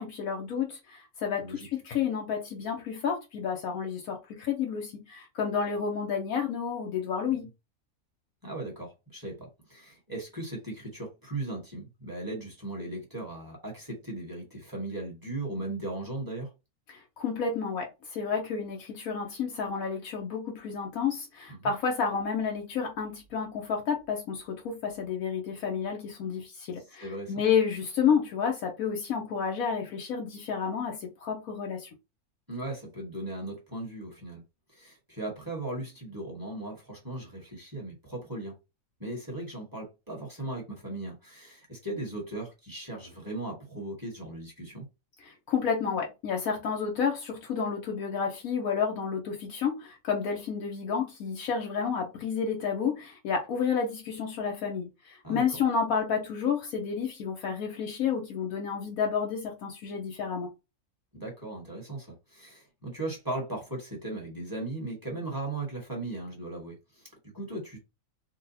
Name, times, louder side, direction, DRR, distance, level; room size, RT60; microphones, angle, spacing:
voice 1, 0.0-7.5 16.9-31.9 45.2-60.5, left 6 dB, 75° left, 1.2 m, -30 dB
voice 2, 8.4-16.5 21.6-21.7 26.9-27.3 32.5-34.4 34.7-38.5 39.0-44.8 55.2-55.5 61.1-67.8, right 2 dB, 15° right, 1.4 m, -37 dB
3.9 x 2.4 x 2.7 m
omnidirectional pair, 1.5 m